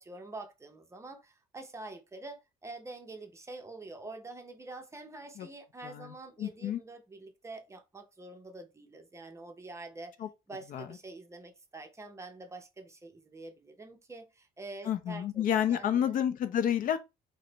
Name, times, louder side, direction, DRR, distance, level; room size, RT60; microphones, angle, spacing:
voice 1, 0.0-10.1 10.5-16.2, right 2 dB, 15° right, 0.6 m, -46 dB
voice 2, 6.4-6.8 10.2-10.3 10.7-10.9 14.9-17.0, left 9 dB, 55° left, 0.4 m, -29 dB
3.1 x 2.0 x 3.8 m
cardioid pair, 110°, 17 cm